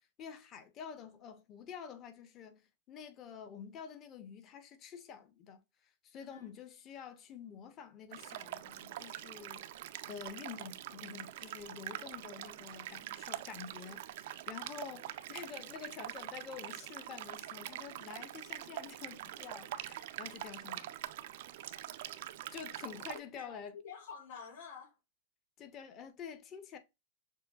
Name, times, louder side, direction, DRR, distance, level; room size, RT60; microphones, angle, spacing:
voice 1, 0.2-5.6 6.0-9.7 10.1-21.0 22.5-23.8 25.6-26.8, left 7 dB, 30° left, 0.9 m, -48 dB
voice 2, 6.1-6.5 22.8-23.0 23.3-25.0, left 6 dB, 60° left, 2.7 m, -49 dB
sound 1, 8.1-23.2, right 13 dB, 65° right, 0.4 m, -44 dB
6.6 x 2.2 x 2.4 m
hypercardioid pair, 130°, 0 cm